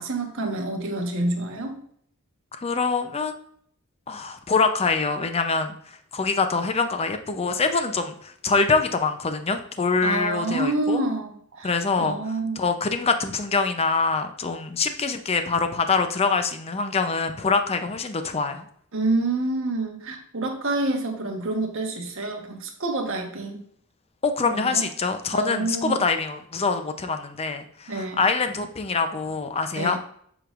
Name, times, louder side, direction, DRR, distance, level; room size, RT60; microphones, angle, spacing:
voice 1, 0.0-1.8 10.0-11.7 12.0-12.6 18.9-23.6 24.5-24.8 25.3-26.0 27.9-28.2 29.7-30.0, right 2 dB, 65° right, 2 dB, 1.2 m, -27 dB
voice 2, 2.6-3.4 4.1-5.7 6.1-11.0 11.6-18.7 24.2-30.0, left 4 dB, 30° left, 8 dB, 0.5 m, -24 dB
7.7 x 5.1 x 2.5 m, 0.64 s
head